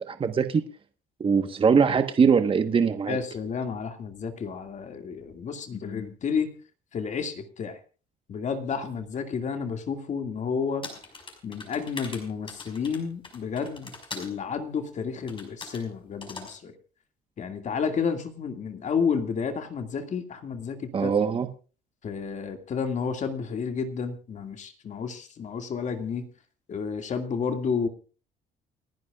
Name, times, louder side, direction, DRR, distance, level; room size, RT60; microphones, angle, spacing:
voice 1, 0.1-0.7 1.2-3.2 20.9-21.5, right 6 dB, 30° right, 8 dB, 1.2 m, -22 dB
voice 2, 3.1-6.5 6.9-7.8 8.3-10.8 11.4-16.7 17.4-21.1 22.0-26.3 26.7-27.9, left 6 dB, 45° left, 6 dB, 2.2 m, -31 dB
sound 1, 10.8-14.3 15.3-15.8 16.2-16.5, left 3 dB, 30° left, 5.5 m, -41 dB
29.5 x 11.0 x 2.4 m, 0.36 s
cardioid pair, 110°, 17 cm